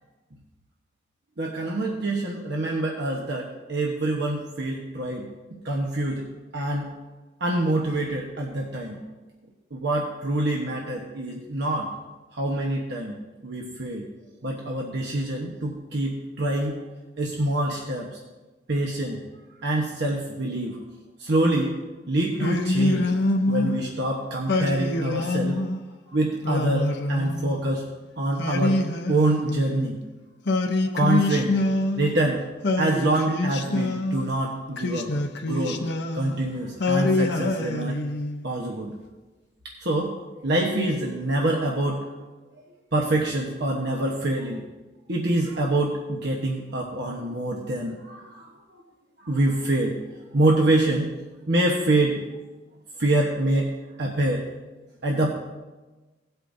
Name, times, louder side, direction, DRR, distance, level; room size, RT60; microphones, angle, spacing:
voice 1, 1.4-5.3 5.6-6.2 6.5-6.9 7.4-9.0 9.7-11.9 12.3-13.1 13.4-14.0 14.4-16.8 17.2-18.1 18.7-19.2 19.6-20.8 21.2-21.8 22.1-23.1 23.5-25.6 26.1-27.8 28.2-28.8 29.1-30.0 30.8-31.5 32.0-32.4 32.8-35.1 35.4-35.8 36.1-38.0 38.4-38.9 39.8-42.1 42.9-44.6 45.1-48.5 49.2-50.0 50.3-51.1 51.5-52.3 53.0-53.7 54.0-54.4 55.0-55.3, right 1 dB, 65° right, -1 dB, 1.1 m, -25 dB
Singing, 22.4-23.8 24.5-25.8 26.4-27.7 28.4-29.9 30.5-32.2 32.6-34.3 34.8-36.4 36.8-38.4, left 2 dB, 65° left, 0.8 m, -25 dB
17.5 x 8.1 x 2.7 m, 1.2 s
head